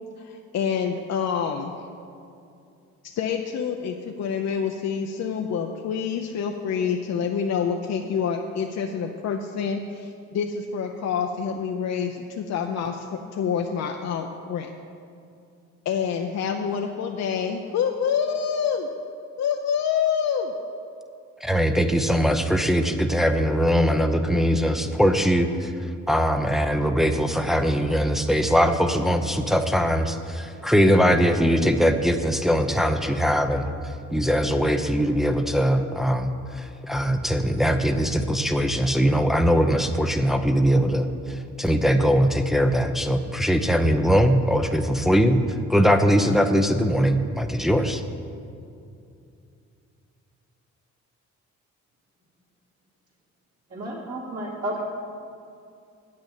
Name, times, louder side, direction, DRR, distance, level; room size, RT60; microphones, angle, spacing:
voice 1, 0.2-1.7 3.0-14.7 15.9-18.9 19.4-20.5, left 7 dB, 60° left, 3 dB, 0.7 m, -27 dB
voice 2, 21.4-25.7 26.1-33.7 34.1-45.4 45.7-48.0, equal, ahead, 6 dB, 0.7 m, -21 dB
voice 3, 53.7-54.8, right 1 dB, 55° right, -6 dB, 2.8 m, -31 dB
8.5 x 6.5 x 8.4 m, 2.5 s
cardioid pair, 90°, 30 cm